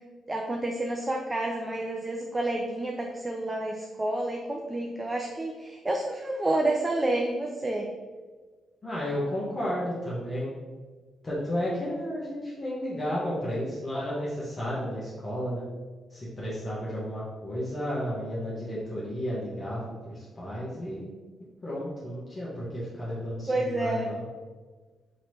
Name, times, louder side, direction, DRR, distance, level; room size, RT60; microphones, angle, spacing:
voice 1, 0.3-7.9 23.5-24.1, right 1 dB, 25° right, 1 dB, 0.5 m, -29 dB
voice 2, 8.8-10.5 11.2-15.7 16.1-21.1 21.6-24.2, equal, 35° left, -7 dB, 1.1 m, -32 dB
3.1 x 2.9 x 4.1 m, 1.4 s
hypercardioid pair, 40°, 0 cm